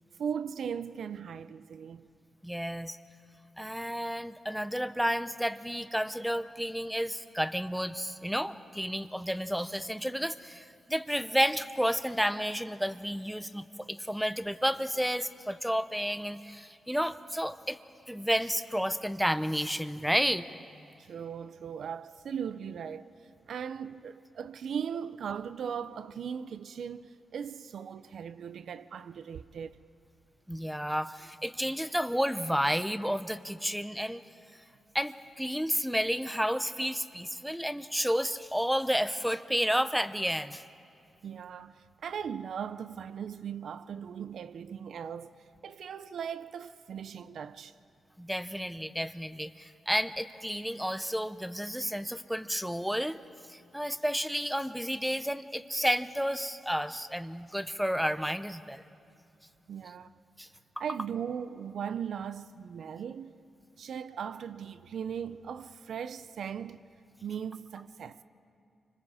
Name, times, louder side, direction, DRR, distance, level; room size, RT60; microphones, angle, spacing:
voice 1, 0.2-2.1 21.0-23.1 23.5-29.9 41.2-47.7 59.7-60.2 60.8-63.4 63.8-66.8 67.2-68.2, right 7 dB, 65° right, 0.5 m, -38 dB
voice 2, 2.4-3.0 3.6-17.8 18.1-20.4 30.5-34.2 34.9-40.6 48.2-53.2 53.5-58.8 60.4-60.5, equal, ahead, 0.6 m, -31 dB
29.0 x 25.5 x 4.9 m
wide cardioid pair, 160°, 0 cm